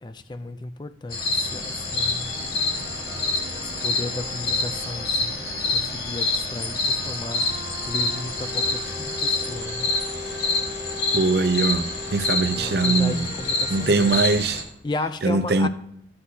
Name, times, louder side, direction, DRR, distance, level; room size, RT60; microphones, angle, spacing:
voice 1, 0.0-2.3 3.6-5.4 5.7-7.5 7.9-9.9 12.5-14.2 14.8-15.7, left 2 dB, 25° left, 0.4 m, -34 dB
sound 1, 1.1-14.6, left 3 dB, 65° left, 2.3 m, -27 dB
sound 2, 1.5-14.2, equal, 30° right, 1.3 m, -40 dB
voice 2, 11.1-13.3 13.7-14.6 15.2-15.7, right 3 dB, 70° right, 0.5 m, -22 dB
15.0 x 7.8 x 2.8 m
head